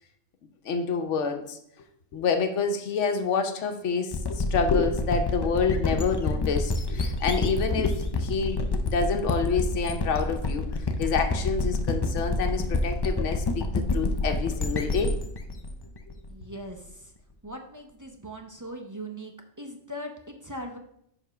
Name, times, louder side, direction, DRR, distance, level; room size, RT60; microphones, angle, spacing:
voice 1, 0.7-1.6 2.1-10.6 11.0-15.2, left 5 dB, 80° left, 5 dB, 1.1 m, -28 dB
sound 1, 4.1-16.7, left 2 dB, 40° left, 0.3 m, -28 dB
voice 2, 16.3-17.1 17.4-20.8, equal, 20° right, 2 dB, 0.5 m, -40 dB
7.0 x 3.6 x 5.6 m, 0.73 s
omnidirectional pair, 1.2 m